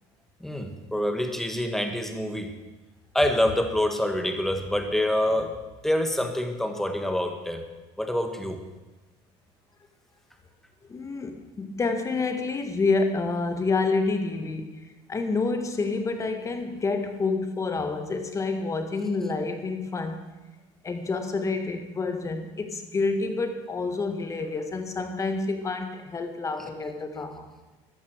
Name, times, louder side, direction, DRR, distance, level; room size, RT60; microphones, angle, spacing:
voice 1, 0.4-2.5 3.1-5.5 5.8-7.6 8.0-8.6, left 1 dB, 5° left, 5 dB, 1.7 m, -26 dB
voice 2, 10.9-14.8 15.1-20.2 20.8-27.5, left 3 dB, 25° left, 7 dB, 1.8 m, -28 dB
14.0 x 11.0 x 6.7 m, 1.1 s
cardioid pair, 125°, 13 cm